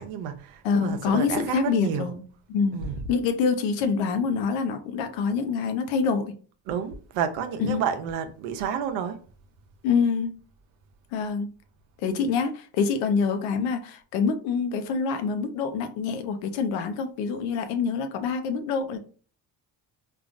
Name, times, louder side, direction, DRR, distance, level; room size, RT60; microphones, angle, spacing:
voice 1, 0.0-2.2 2.7-3.1 6.7-9.2, right 7 dB, 80° right, 0.7 m, -30 dB
voice 2, 0.6-2.2 2.5-2.8 3.1-6.3 7.6-7.8 9.8-10.4 11.1-11.5 12.0-19.0, left 5 dB, 80° left, 0.7 m, -26 dB
3.7 x 2.5 x 2.5 m
supercardioid pair, 65°, 45 cm